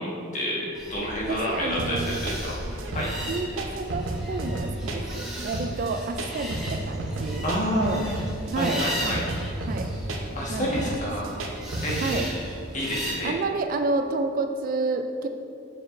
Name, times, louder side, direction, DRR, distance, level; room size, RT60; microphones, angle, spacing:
voice 1, 0.0-2.6 2.9-3.1 7.4-7.9 8.6-9.2 10.3-11.3 11.8-12.3 12.7-13.3, equal, 35° left, -4 dB, 1.3 m, -29 dB
sound 1, 0.7-13.1, equal, ahead, 1.5 m, -37 dB
voice 2, 1.3-2.2 3.3-8.1 8.5-9.2 9.7-9.9 10.3-11.0 12.0-12.3 13.2-15.3, right 3 dB, 45° right, 7 dB, 0.3 m, -30 dB
sound 2, 1.8-12.1, right 2 dB, 70° right, 0.8 m, -32 dB
7.6 x 6.5 x 2.5 m, 2.7 s
head